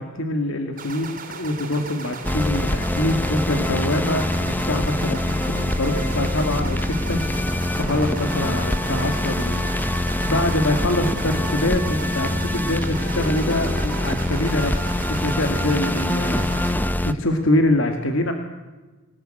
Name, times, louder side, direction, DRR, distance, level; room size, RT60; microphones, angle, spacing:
voice 1, 0.0-7.5 7.8-10.0 10.3-18.3, left 1 dB, 70° left, 5 dB, 2.3 m, -25 dB
sound 1, 0.8-16.7, right 4 dB, 45° right, 3.9 m, -37 dB
sound 2, 2.2-17.1, left 1 dB, 10° left, 0.9 m, -24 dB
26.5 x 18.5 x 9.1 m, 1.2 s
head